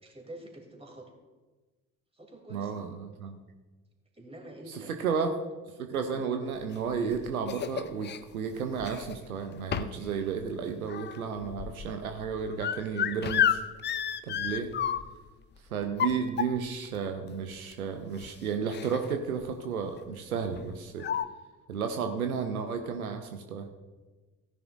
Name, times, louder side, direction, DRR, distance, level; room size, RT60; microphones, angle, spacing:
voice 1, 0.0-1.1 2.1-2.8 4.1-4.9, right 1 dB, 15° right, 1 dB, 2.9 m, -47 dB
voice 2, 2.5-3.4 4.7-5.4 5.8-13.6 14.2-14.7 15.7-21.1 21.7-23.7, right 6 dB, 80° right, 6 dB, 0.8 m, -33 dB
sound 1, 6.7-8.2 8.8-9.3 9.7-10.1 10.4-15.3 15.8-16.9 17.7-17.8 18.1-18.3 18.7-19.1 19.4-19.6 20.6-20.7 21.0-21.2, left 9 dB, 25° left, 0.5 m, -31 dB
16.0 x 10.5 x 2.5 m, 1.2 s
figure-of-eight pair, 50°, 42 cm